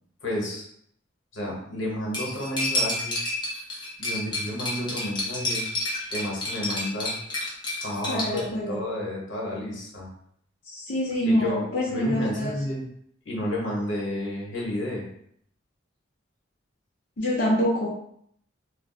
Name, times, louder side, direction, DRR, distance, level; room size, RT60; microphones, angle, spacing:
voice 1, 0.2-0.6 1.3-3.2 4.0-5.7 6.1-7.1 7.8-10.1 11.2-12.8 13.2-15.1, left 1 dB, 85° left, -3 dB, 1.1 m, -31 dB
Cutlery silverware, 2.1-8.4, left 1 dB, 25° left, 0.7 m, -30 dB
voice 2, 8.1-8.8 10.7-12.6 17.2-17.9, equal, 70° left, -8 dB, 0.7 m, -26 dB
2.4 x 2.2 x 3.8 m, 0.68 s
head